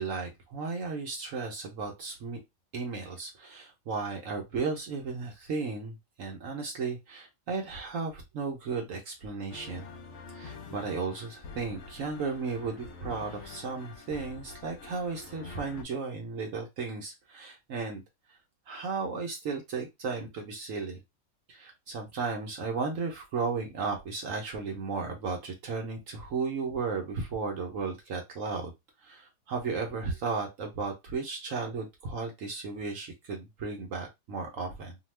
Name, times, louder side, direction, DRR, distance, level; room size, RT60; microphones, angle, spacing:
voice 1, 0.0-2.4 2.7-9.9 10.3-18.0 18.3-18.4 18.7-21.0 21.5-28.7 29.0-35.0, right 4 dB, 60° right, 2 dB, 0.9 m, -35 dB
sound 1, 9.5-15.8, left 4 dB, 70° left, 0.7 m, -46 dB
2.7 x 2.2 x 3.1 m, 0.20 s
omnidirectional pair, 1.7 m